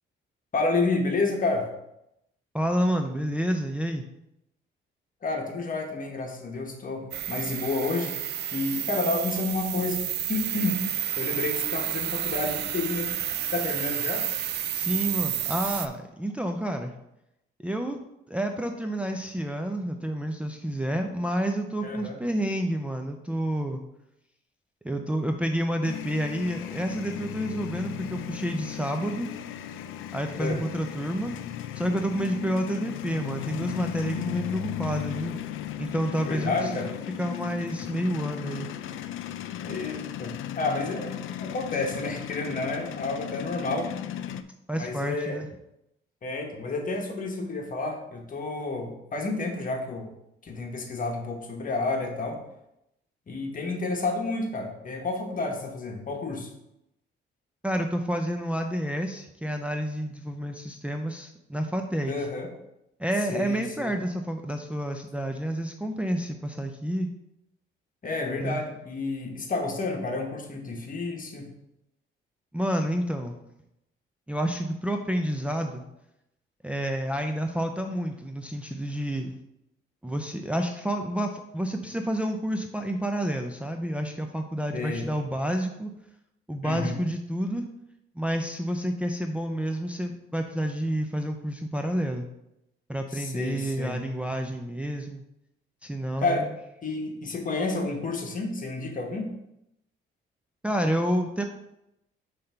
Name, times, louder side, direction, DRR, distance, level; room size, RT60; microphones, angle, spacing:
voice 1, 0.5-1.7 5.2-8.1 8.5-10.0 10.3-10.8 11.2-13.1 13.5-14.3 21.8-22.2 30.4-30.6 36.2-36.9 39.6-43.9 44.7-45.4 46.2-50.1 50.4-52.4 53.3-56.5 62.1-62.5 63.3-63.9 68.0-71.5 84.7-85.1 86.6-87.0 93.1-94.0 96.2-96.5 96.8-99.3, left 3 dB, 45° left, 2 dB, 1.3 m, -30 dB
voice 2, 2.5-4.0 14.7-16.9 17.6-18.0 18.3-23.8 24.8-29.3 30.1-31.3 31.7-35.4 35.8-36.5 37.2-38.7 44.7-45.5 57.6-62.1 63.0-67.1 68.4-68.6 72.5-73.4 74.3-75.8 76.6-79.3 80.0-85.9 86.5-87.7 88.2-92.3 92.9-95.2 95.8-96.5 100.6-101.4, right 1 dB, 5° right, 4 dB, 0.5 m, -29 dB
sound 1, 7.1-15.9, right 11 dB, 60° right, 0.4 m, -30 dB
sound 2, 25.8-44.4, left 11 dB, 85° left, 0.4 m, -36 dB
5.5 x 3.3 x 5.6 m, 0.84 s
cardioid pair, 90°, 20 cm